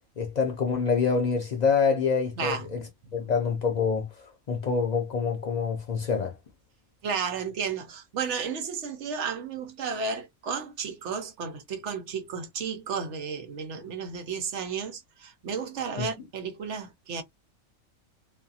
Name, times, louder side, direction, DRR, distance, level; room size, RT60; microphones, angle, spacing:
voice 1, 0.2-2.8 3.1-4.1 4.5-6.3 16.0-16.1, left 5 dB, 85° left, 0.3 m, -26 dB
voice 2, 2.4-3.3 7.0-17.2, right 6 dB, 65° right, 0.9 m, -33 dB
2.6 x 2.3 x 2.6 m
omnidirectional pair, 1.4 m